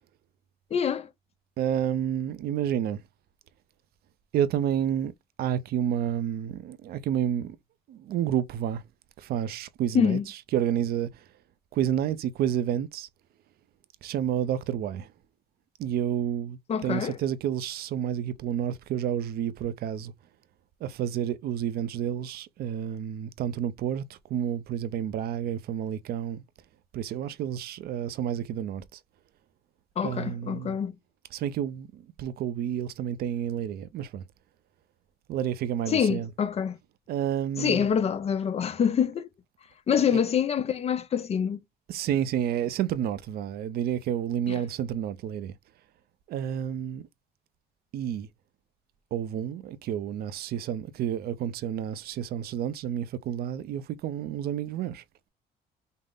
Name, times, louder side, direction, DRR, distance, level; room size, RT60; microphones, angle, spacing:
voice 1, 0.7-1.1 9.9-10.2 16.7-17.2 30.0-30.9 35.9-36.8 37.6-39.3 39.9-41.6, left 7 dB, 40° left, 0.6 m, -26 dB
voice 2, 1.6-3.0 4.3-5.1 5.4-7.6 7.9-8.8 9.2-11.2 11.7-13.1 14.0-15.1 15.8-20.1 20.8-26.4 26.9-29.0 30.0-30.8 31.3-34.2 35.3-36.3 37.1-37.9 41.9-45.6 46.3-47.1 47.9-48.3 49.1-55.0, right 10 dB, 65° right, 0.6 m, -30 dB
5.5 x 2.1 x 3.7 m
cardioid pair, 110°, 17 cm